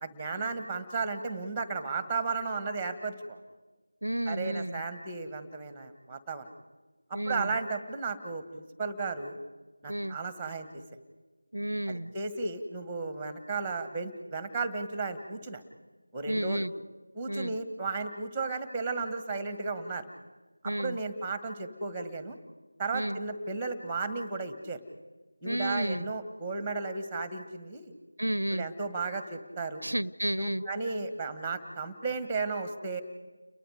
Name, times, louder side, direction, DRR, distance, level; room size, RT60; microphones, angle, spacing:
voice 1, 0.0-3.4 4.3-6.5 7.1-9.3 9.8-10.8 11.9-15.6 16.1-16.7 17.1-20.1 20.6-22.4 22.8-24.8 25.4-27.9 28.5-29.8 30.4-33.0, right 4 dB, 5° right, 10 dB, 1.6 m, -34 dB
voice 2, 4.0-4.8 7.1-7.5 9.9-10.2 11.5-12.1 16.3-16.7 17.3-17.6 20.6-21.0 22.9-23.2 25.4-26.1 28.2-28.7 29.8-30.6, right 1 dB, 85° right, 22 dB, 0.6 m, -31 dB
30.0 x 22.5 x 5.0 m, 1.2 s
figure-of-eight pair, 170°, 0 cm